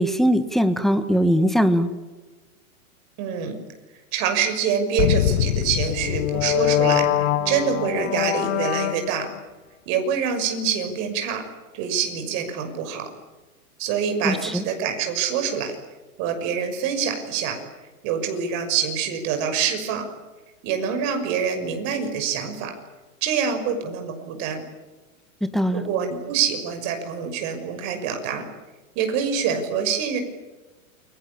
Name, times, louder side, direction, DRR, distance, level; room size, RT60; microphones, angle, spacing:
voice 1, 0.0-1.9 14.2-14.6 25.5-25.8, equal, ahead, 10 dB, 1.4 m, -20 dB
voice 2, 3.2-3.6 4.1-9.3 9.9-11.4 11.7-13.1 13.8-15.8 16.2-17.6 18.0-20.0 20.6-22.7 23.2-24.6 25.7-28.5 29.0-30.2, right 7 dB, 35° right, 6 dB, 6.2 m, -25 dB
sound 1, 5.0-9.4, left 12 dB, 50° left, 1.8 m, -23 dB
29.0 x 22.5 x 8.7 m, 1.2 s
hypercardioid pair, 145°, 43 cm